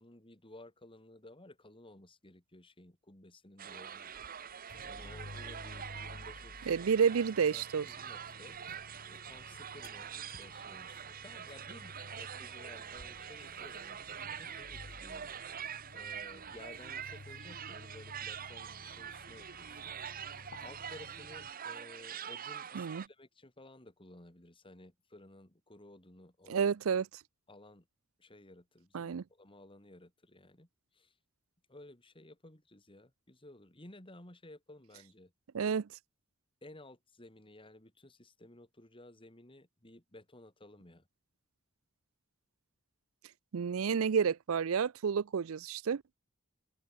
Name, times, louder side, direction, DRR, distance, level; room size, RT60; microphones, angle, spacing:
voice 1, 0.0-4.1 4.4-4.6 4.8-6.9 7.5-8.6 9.1-19.9 20.6-26.7 27.5-27.9 28.2-30.7 30.9-31.1 31.7-35.3 36.6-41.1, left 1 dB, 25° left, 3.4 m, -55 dB
sound 1, 3.6-23.1, right 8 dB, 45° right, 1.0 m, -45 dB
sound 2, 4.7-21.5, left 2 dB, 60° left, 1.0 m, -54 dB
voice 2, 6.7-7.9 22.7-23.0 26.5-27.0 28.9-29.2 35.5-35.9 43.5-46.0, right 6 dB, 75° right, 0.5 m, -30 dB
open air
head